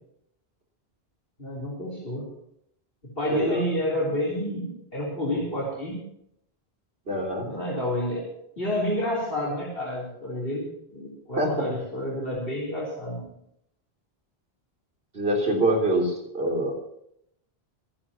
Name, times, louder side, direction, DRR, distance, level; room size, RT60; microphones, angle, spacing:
voice 1, 1.4-2.3 3.0-6.0 7.4-8.2 8.6-13.2, left 1 dB, 65° left, -4 dB, 3.9 m, -29 dB
voice 2, 3.3-3.6 7.1-7.5 11.4-11.7 15.1-16.8, right 1 dB, 75° right, -1 dB, 3.6 m, -25 dB
26.0 x 11.0 x 2.9 m, 0.74 s
omnidirectional pair, 1.0 m